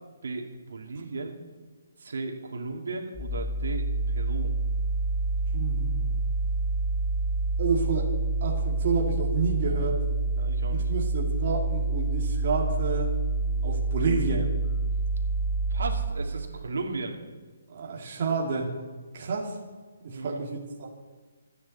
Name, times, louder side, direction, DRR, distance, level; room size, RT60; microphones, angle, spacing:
voice 1, 0.2-1.3 2.0-4.5 10.3-10.9 15.7-17.2 20.1-20.4, right 3 dB, 75° right, 2 dB, 2.5 m, -35 dB
sound 1, 3.1-16.0, right 3 dB, 15° left, 5.7 m, -27 dB
voice 2, 5.5-6.2 7.6-8.1 8.4-10.0 10.7-13.1 13.6-14.5 17.7-18.8 19.1-19.6 20.0-20.6, right 4 dB, 35° right, -2 dB, 2.4 m, -29 dB
27.5 x 9.6 x 4.2 m, 1.4 s
hypercardioid pair, 175°, 0 cm